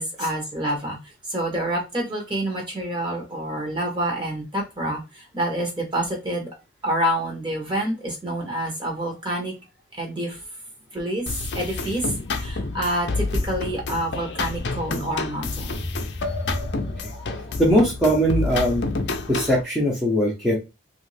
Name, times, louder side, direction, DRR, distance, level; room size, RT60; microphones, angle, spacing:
voice 1, 0.0-6.5 6.8-9.5 9.9-10.4 10.9-11.3 11.5-15.8 16.4-16.5 17.0-17.5, right 1 dB, 25° right, 1.1 m, -28 dB
sound 1, 11.3-19.6, left 3 dB, 55° left, 0.5 m, -29 dB
voice 2, 17.6-18.9 19.3-20.6, equal, ahead, 0.8 m, -20 dB
3.2 x 2.6 x 3.3 m
head